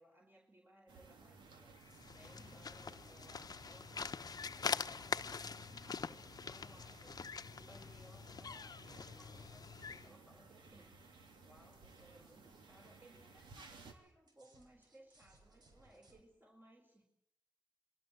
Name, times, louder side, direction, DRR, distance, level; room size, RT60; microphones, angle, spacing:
voice 1, 0.0-1.8 2.1-17.0, right 1 dB, 25° right, 1 dB, 5.0 m, -64 dB
sound 1, 0.9-13.9, right 3 dB, 90° right, 3.1 m, -59 dB
sound 2, 1.7-3.6 4.0-5.2 6.8-7.3 8.0-8.4 8.9-9.8 10.3-10.4 10.9-11.0 11.3-13.1 13.7-16.2, right 2 dB, 60° right, 6.0 m, -72 dB
sound 3, 1.8-10.1, left 5 dB, 55° left, 1.0 m, -44 dB
26.0 x 22.5 x 7.9 m, 0.77 s
cardioid pair, 50°, 8 cm